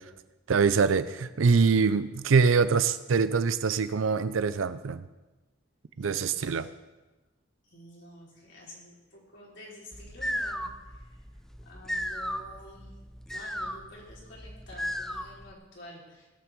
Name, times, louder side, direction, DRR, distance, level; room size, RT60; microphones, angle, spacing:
voice 1, 0.5-5.0 6.0-6.7, right 5 dB, 85° right, 13 dB, 0.5 m, -24 dB
voice 2, 6.0-6.7 7.7-10.6 10.9-11.1 11.6-12.9 13.3-16.3, left 1 dB, 65° left, -3 dB, 4.0 m, -49 dB
sound 1, 9.9-15.5, equal, ahead, 0.6 m, -35 dB
17.5 x 5.9 x 7.5 m, 1.1 s
head